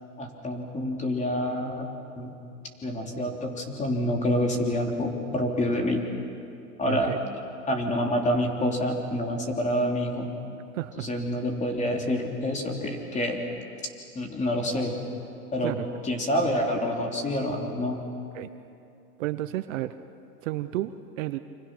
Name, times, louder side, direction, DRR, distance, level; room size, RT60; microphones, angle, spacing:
voice 1, 0.2-1.9 2.2-2.3 2.8-6.0 6.8-7.2 7.7-10.3 11.0-13.4 14.1-14.9 15.5-15.8 16.0-18.0, left 1 dB, 15° left, 2 dB, 3.3 m, -27 dB
voice 2, 6.8-7.2 10.7-11.1 15.6-15.9 18.3-18.5 19.2-19.9 20.4-21.4, right 15 dB, 50° right, 12 dB, 0.9 m, -31 dB
29.0 x 26.5 x 6.2 m, 2.6 s
hypercardioid pair, 130°, 48 cm